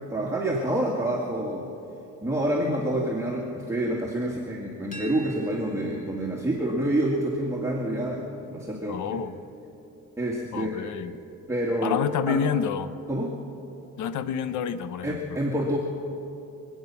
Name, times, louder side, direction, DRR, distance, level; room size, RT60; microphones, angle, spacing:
voice 1, 0.1-1.7 2.2-9.2 10.2-11.2 11.5-12.0 12.3-12.4 13.1-13.4 15.0-15.8, right 1 dB, 10° right, -3 dB, 2.1 m, -28 dB
sound 1, 4.9-10.7, right 3 dB, 25° left, 2.6 m, -43 dB
voice 2, 8.9-9.3 10.5-11.1 11.8-12.9 14.0-15.2, left 7 dB, 75° left, 13 dB, 0.8 m, -28 dB
26.5 x 9.0 x 5.9 m, 2.8 s
cardioid pair, 90°, 30 cm